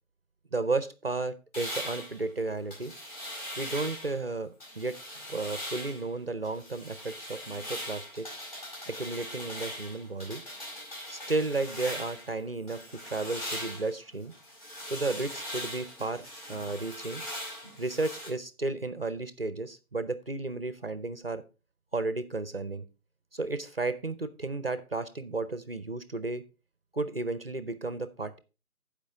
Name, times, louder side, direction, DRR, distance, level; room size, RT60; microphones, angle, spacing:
voice 1, 0.5-2.9 3.6-5.0 5.3-8.3 8.8-10.4 11.1-14.3 14.8-17.2 17.8-21.4 21.9-22.8 23.3-26.4 26.9-28.4, right 3 dB, 45° right, 13 dB, 0.6 m, -33 dB
sound 1, 1.5-4.2 4.6-6.1 6.4-12.3 12.7-18.3, equal, 25° left, 4.5 m, -40 dB
14.0 x 5.1 x 3.5 m, 0.30 s
figure-of-eight pair, 160°, 43 cm